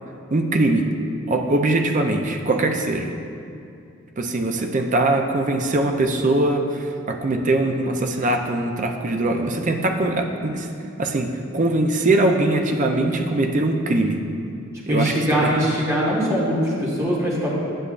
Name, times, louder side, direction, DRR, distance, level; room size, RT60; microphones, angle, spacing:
voice 1, 0.3-0.9 1.3-3.1 4.2-10.7 11.0-14.2 14.9-15.5, right 2 dB, 40° right, 4 dB, 0.5 m, -21 dB
voice 2, 14.9-17.6, equal, 15° right, -6 dB, 1.5 m, -22 dB
9.9 x 6.7 x 2.5 m, 2.5 s
head